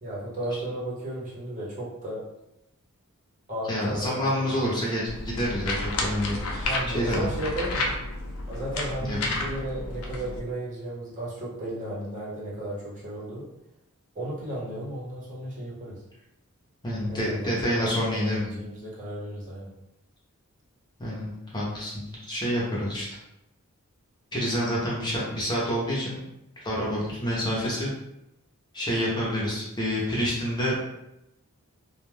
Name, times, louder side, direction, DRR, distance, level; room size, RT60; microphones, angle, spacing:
voice 1, 0.0-2.2 3.5-4.8 6.6-7.9 8.5-13.5 14.1-16.0 17.0-19.7, right 1 dB, 35° right, -6 dB, 0.8 m, -34 dB
voice 2, 3.7-6.7 6.9-7.3 9.0-9.4 16.8-18.6 21.0-23.1 24.3-26.2 26.6-27.9 28.7-30.8, equal, 20° left, -6 dB, 0.7 m, -28 dB
sound 1, 5.1-10.4, left 2 dB, 70° left, 0.5 m, -31 dB
2.3 x 2.2 x 3.2 m, 0.86 s
head